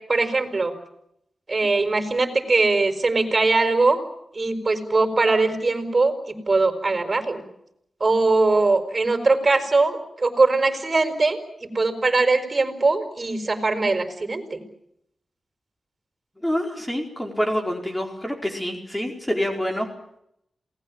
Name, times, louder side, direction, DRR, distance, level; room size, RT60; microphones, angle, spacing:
voice 1, 0.1-0.7 1.5-4.0 4.3-7.4 8.0-14.6, right 3 dB, 35° right, 8 dB, 5.3 m, -21 dB
voice 2, 16.4-19.9, equal, 10° left, 4 dB, 4.6 m, -26 dB
28.0 x 19.5 x 8.9 m, 0.77 s
cardioid pair, 70°, 0 cm